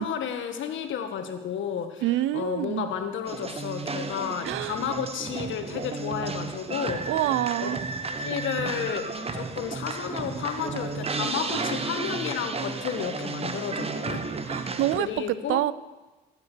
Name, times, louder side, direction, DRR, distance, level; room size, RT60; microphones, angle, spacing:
voice 1, 0.0-2.1 2.3-7.1 7.6-7.8 8.1-14.6 15.0-15.6, left 8 dB, 75° left, 7 dB, 1.6 m, -32 dB
voice 2, 2.0-2.9 4.4-4.8 7.1-7.8 11.5-11.7 14.5-15.7, right 14 dB, 85° right, 18 dB, 0.5 m, -27 dB
sound 1, 3.3-15.0, right 4 dB, 30° right, 1.1 m, -33 dB
15.0 x 8.3 x 6.7 m, 1.2 s
cardioid pair, 90°, 20 cm